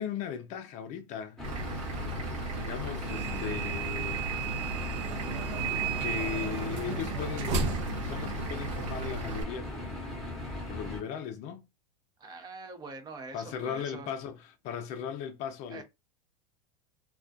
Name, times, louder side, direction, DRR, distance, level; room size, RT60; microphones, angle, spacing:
voice 1, 0.0-1.4 2.5-4.2 6.0-10.2 10.7-11.6 13.3-15.8, left 8 dB, 45° left, 0.4 m, -37 dB
sound 1, 1.4-11.0, left 1 dB, ahead, 0.9 m, -39 dB
Vehicle / Engine, 1.4-9.4, right 2 dB, 80° right, 1.0 m, -37 dB
sound 2, 3.1-8.9, right 6 dB, 65° right, 0.6 m, -35 dB
voice 2, 12.2-14.1 15.7-15.8, right 3 dB, 25° right, 0.5 m, -44 dB
2.3 x 2.2 x 2.5 m
supercardioid pair, 125°, 16 cm